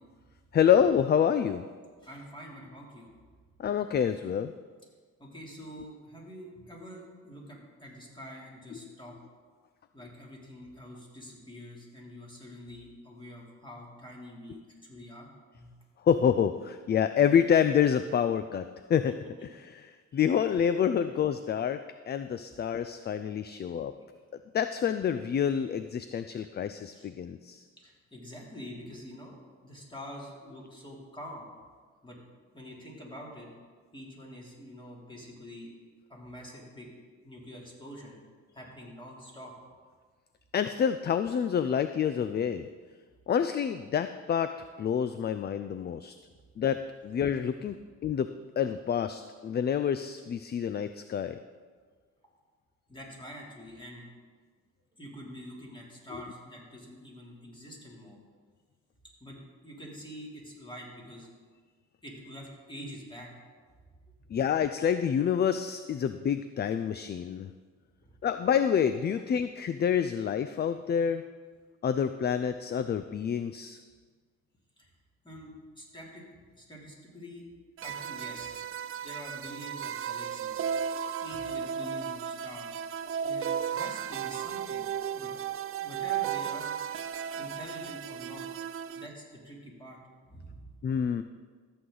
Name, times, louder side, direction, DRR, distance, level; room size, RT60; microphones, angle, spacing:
voice 1, 0.5-1.6 3.6-4.5 16.0-19.2 19.4-23.9 24.5-27.6 40.5-42.7 43.3-44.5 44.8-46.1 46.6-47.8 48.0-51.4 64.3-67.5 68.2-71.2 71.8-73.8 90.8-91.2, left 8 dB, 35° left, 11 dB, 0.4 m, -27 dB
voice 2, 2.0-3.1 5.2-9.2 9.9-15.3 15.5-15.7 19.4-19.5 23.5-23.6 26.9-27.1 27.8-31.5 32.0-32.2 32.5-33.5 33.9-35.7 36.1-38.2 38.5-39.5 52.9-54.1 54.9-58.2 59.2-59.4 59.6-61.3 62.0-63.3 64.2-64.3 68.0-68.1 74.8-74.9 75.2-77.5 77.8-78.5 79.0-80.6 81.2-82.8 83.2-85.3 85.8-86.8 87.3-88.5 88.9-90.0 90.2-90.7, equal, 15° left, -3 dB, 3.0 m, -46 dB
sound 1, 77.8-89.1, right 8 dB, 45° right, 0.4 m, -35 dB
14.0 x 8.0 x 3.9 m, 1.5 s
cardioid pair, 90°, 30 cm